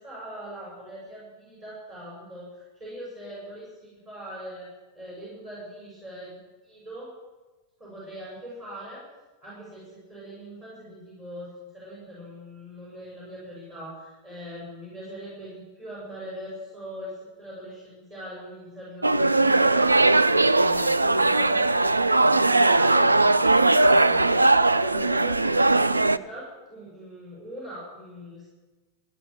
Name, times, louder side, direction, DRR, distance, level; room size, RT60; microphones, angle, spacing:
voice 1, 0.0-4.7 4.9-7.1 7.8-9.0 9.4-28.5, equal, 25° right, -7 dB, 6.8 m, -41 dB
sound 1, 19.0-26.2, right 2 dB, 80° right, 0.4 m, -19 dB
14.5 x 10.0 x 8.3 m, 1.2 s
figure-of-eight pair, 90°, 0 cm